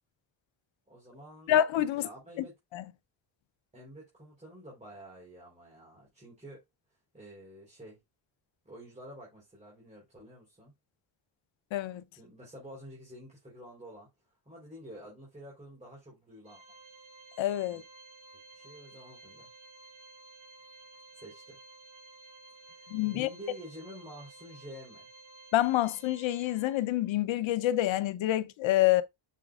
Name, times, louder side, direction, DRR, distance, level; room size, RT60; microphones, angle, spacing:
voice 1, 0.9-1.6 1.9-2.6 3.7-6.6 7.1-8.0 8.6-10.7 12.2-14.1 14.5-16.6 17.7-17.8 18.3-19.5 21.1-21.6 22.6-25.1, equal, 15° right, 3.8 m, -49 dB
voice 2, 1.5-2.1 2.7-2.8 11.7-12.0 17.4-17.8 22.9-23.3 25.5-29.0, left 13 dB, 85° left, 0.7 m, -27 dB
Organ, 16.5-27.1, right 3 dB, 85° right, 2.9 m, -53 dB
7.0 x 5.8 x 2.4 m
cardioid pair, 140°, 44 cm